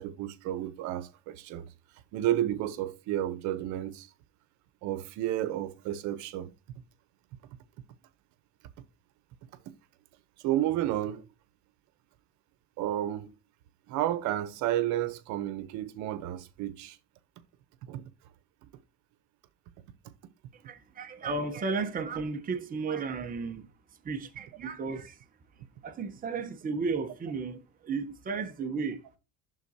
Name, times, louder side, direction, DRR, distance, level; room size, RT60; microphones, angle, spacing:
voice 1, 0.0-1.7 2.1-4.1 4.8-6.5 10.4-11.3 12.8-13.3 13.9-17.0 17.9-18.0 23.2-23.3, right 13 dB, 80° right, 0.9 m, -31 dB
voice 2, 20.5-23.7 24.0-25.2 25.8-29.0, right 4 dB, 30° right, 0.9 m, -34 dB
11.5 x 3.9 x 2.8 m
cardioid pair, 125°, 29 cm